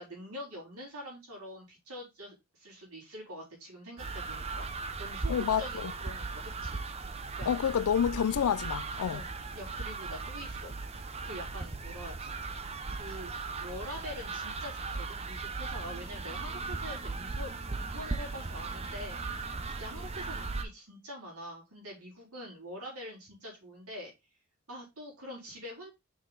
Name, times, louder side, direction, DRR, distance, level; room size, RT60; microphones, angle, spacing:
voice 1, 0.0-4.7 5.0-6.8 7.1-7.5 9.1-9.2 9.5-10.7 11.2-12.3 12.9-13.3 13.6-19.2 19.8-24.1 24.7-25.9, equal, 85° right, 4.1 m, -45 dB
sound 1, 4.0-20.6, right 3 dB, 25° right, 0.6 m, -38 dB
voice 2, 5.3-5.9 7.5-9.2, left 8 dB, 85° left, 0.4 m, -28 dB
6.4 x 5.0 x 3.9 m
head